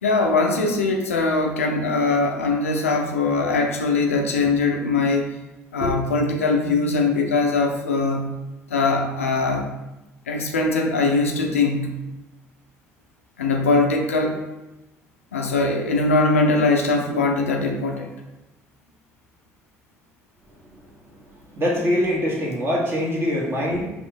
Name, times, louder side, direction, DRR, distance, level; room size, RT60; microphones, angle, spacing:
voice 1, 0.0-5.4 5.7-8.4 8.7-9.7 10.3-12.0 13.4-14.4 15.3-18.1, left 3 dB, 80° left, 3 dB, 0.4 m, -21 dB
voice 2, 21.5-23.9, left 1 dB, 30° right, -3 dB, 1.5 m, -23 dB
5.1 x 2.4 x 3.7 m, 1.0 s
figure-of-eight pair, 50°, 7 cm